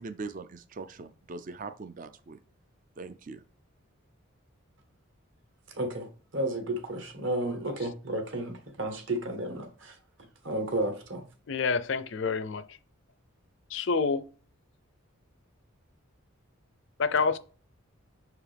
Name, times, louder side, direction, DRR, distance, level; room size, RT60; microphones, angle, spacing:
voice 1, 0.0-2.4 3.0-3.4, right 3 dB, 40° right, 0.4 m, -41 dB
voice 2, 5.8-10.0 10.4-11.2, right 1 dB, 60° right, 1.4 m, -32 dB
voice 3, 11.5-12.6 13.7-14.3 17.0-17.4, left 4 dB, 55° left, 0.5 m, -27 dB
6.3 x 4.9 x 3.4 m
head